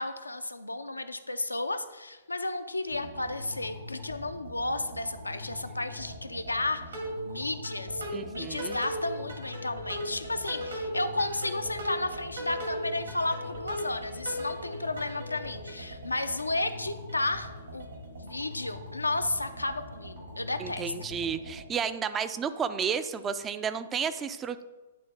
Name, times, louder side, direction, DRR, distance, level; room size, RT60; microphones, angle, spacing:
voice 1, 0.0-6.8 7.3-8.0 8.3-17.9 18.2-20.9, left 2 dB, 85° left, 9 dB, 0.4 m, -33 dB
sound 1, 2.9-21.6, equal, 75° right, 2.3 m, -39 dB
voice 2, 8.1-8.8 20.6-24.6, right 7 dB, 20° right, 11 dB, 0.3 m, -32 dB
10.0 x 3.5 x 3.3 m, 1.2 s
figure-of-eight pair, 115°, 0 cm